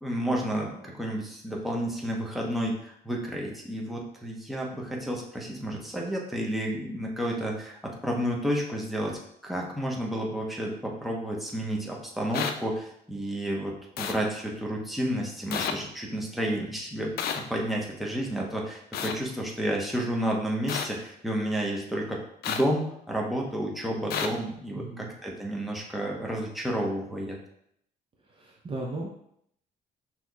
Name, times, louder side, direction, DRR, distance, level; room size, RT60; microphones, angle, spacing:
voice 1, 0.0-22.2 22.5-27.4, equal, ahead, -2 dB, 1.0 m, -31 dB
sound 1, 12.3-12.5 14.0-14.1 15.5-15.7 17.2-17.4 18.9-19.1 20.7-20.9 22.4-22.6 24.1-24.3, left 7 dB, 75° left, 0.4 m, -30 dB
voice 2, 24.7-25.2 28.3-29.2, right 2 dB, 35° right, -1 dB, 0.6 m, -36 dB
6.0 x 3.0 x 2.3 m, 0.71 s
cardioid pair, 90°, 16 cm